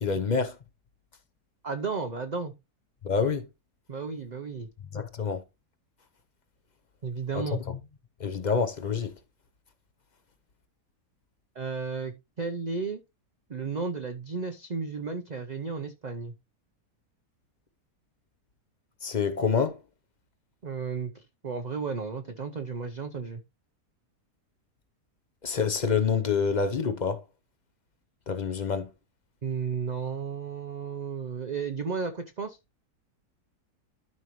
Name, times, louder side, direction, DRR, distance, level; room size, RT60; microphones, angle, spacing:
voice 1, 0.0-0.6 3.0-3.4 4.9-5.4 8.2-9.1 19.0-19.7 25.4-27.2 28.3-28.9, left 5 dB, 40° left, 0.6 m, -27 dB
voice 2, 1.6-2.5 3.9-4.7 7.0-7.6 11.5-13.0 13.5-16.3 20.6-23.4 29.4-32.6, right 5 dB, 50° right, 0.5 m, -33 dB
12.5 x 5.4 x 3.0 m
omnidirectional pair, 1.7 m